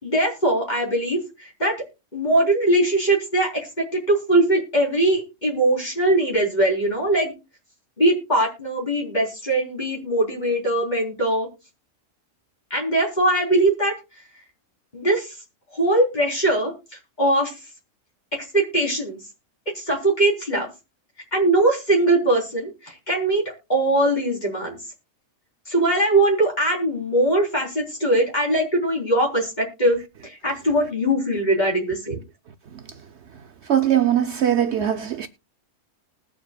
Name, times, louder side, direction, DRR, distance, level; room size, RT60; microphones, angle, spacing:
voice 1, 0.0-1.8 2.1-3.7 3.9-7.3 8.0-11.5 12.7-13.9 14.9-15.3 15.7-16.7 17.2-17.5 18.3-19.2 19.8-20.7 21.3-24.8 25.7-32.2, right 1 dB, 35° left, 4.0 m, -21 dB
voice 2, 33.7-35.3, right 10 dB, 60° right, 1.0 m, -20 dB
20.0 x 7.3 x 2.3 m
omnidirectional pair, 1.4 m